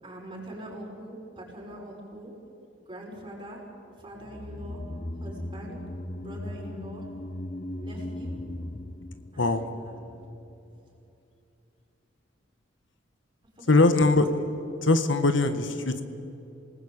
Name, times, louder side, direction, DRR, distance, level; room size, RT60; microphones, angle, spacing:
voice 1, 0.0-2.3 2.8-3.6 4.0-4.8 5.2-5.8 6.2-7.0 7.8-8.4 9.3-9.9 13.6-14.2, right 1 dB, 25° right, -2 dB, 6.3 m, -43 dB
sound 1, 4.2-10.6 10.8-10.9, left 1 dB, 35° left, 0.9 m, -38 dB
voice 2, 13.7-14.3 14.8-16.0, left 2 dB, 75° left, 9 dB, 1.5 m, -21 dB
27.5 x 19.5 x 8.9 m, 2.8 s
head